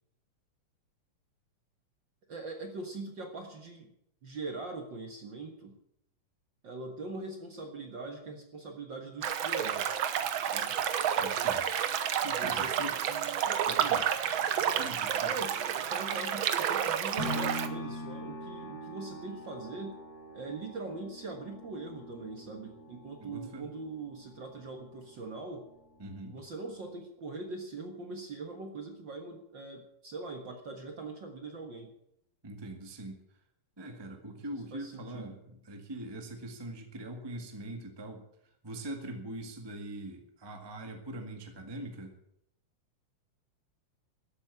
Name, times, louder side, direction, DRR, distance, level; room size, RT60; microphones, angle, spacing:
voice 1, 2.3-3.9 4.2-5.7 6.6-9.9 10.4-10.8 12.2-14.0 15.2-20.0 20.3-25.7 26.3-31.9 34.7-35.4, right 3 dB, 45° right, 3 dB, 1.7 m, -42 dB
sound 1, 9.2-17.7, right 9 dB, 80° right, 1.1 m, -30 dB
voice 2, 11.2-11.7 12.2-13.0 13.7-14.1 14.8-15.3 23.2-23.7 26.0-26.4 32.4-33.2 33.8-38.2 38.6-42.1, right 1 dB, 15° right, 4 dB, 1.1 m, -42 dB
sound 2, 17.2-25.3 25.8-25.9, equal, 20° left, 3.5 m, -42 dB
13.5 x 8.6 x 8.4 m, 0.75 s
omnidirectional pair, 3.6 m